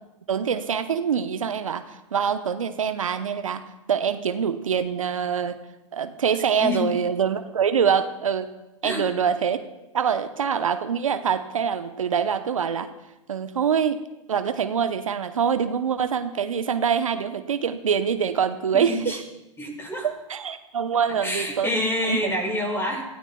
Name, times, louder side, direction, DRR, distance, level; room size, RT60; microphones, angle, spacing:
voice 1, 0.3-3.6 3.9-5.6 5.9-8.5 8.8-9.6 9.9-12.9 13.3-14.0 14.3-19.2 20.0-21.8 22.1-22.3, right 7 dB, 85° right, 9 dB, 0.9 m, -25 dB
voice 2, 6.6-6.9 8.8-9.0 18.7-19.2 19.6-20.1 21.2-23.1, left 1 dB, 15° left, -1 dB, 7.0 m, -27 dB
29.0 x 16.0 x 2.3 m, 0.98 s
hypercardioid pair, 105°, 17 cm